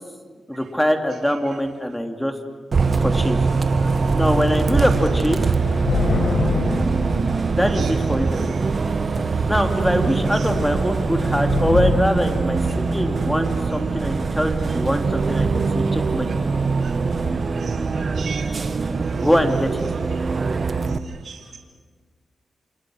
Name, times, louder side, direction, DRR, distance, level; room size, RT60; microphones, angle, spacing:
voice 1, 0.5-2.3 3.0-3.4 3.8-5.4 7.6-8.6 9.4-16.4 19.2-19.8, equal, 5° left, 5 dB, 3.1 m, -23 dB
Bus, 2.7-21.0, right 4 dB, 50° right, 1.6 m, -22 dB
Thunder / Rain, 3.4-3.6 3.8-7.9 8.7-9.1 9.5-9.7 9.9-13.7, left 3 dB, 80° left, 5.2 m, -27 dB
voice 2, 17.6-18.5 21.2-21.4, right 6 dB, 70° right, 2 dB, 3.0 m, -36 dB
28.5 x 28.0 x 6.5 m, 1.5 s
cardioid pair, 70°, 0 cm